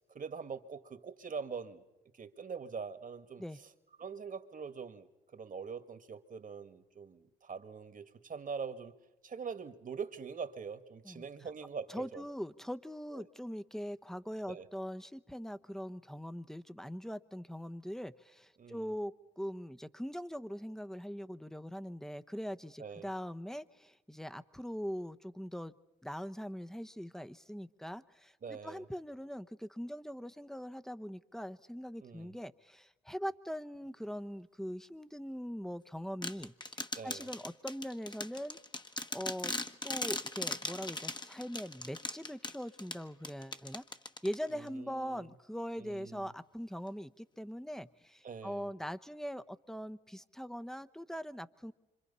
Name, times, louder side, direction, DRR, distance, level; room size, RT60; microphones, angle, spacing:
voice 1, 0.0-1.8 2.2-3.7 4.0-5.1 5.3-8.9 9.2-12.2 13.1-13.2 14.5-14.7 18.6-18.9 22.8-23.1 28.4-28.8 32.0-32.3 37.0-37.3 44.5-45.3 45.8-46.3 48.2-48.7, right 6 dB, 50° right, 9 dB, 2.0 m, -43 dB
voice 2, 11.9-25.7 26.0-36.5 37.0-38.6 39.1-39.5 39.8-43.8 44.2-51.7, equal, ahead, 11 dB, 1.0 m, -42 dB
sound 1, 36.2-44.7, left 2 dB, 25° left, 1.4 m, -40 dB
26.5 x 26.0 x 5.6 m, 1.0 s
supercardioid pair, 50°, 18 cm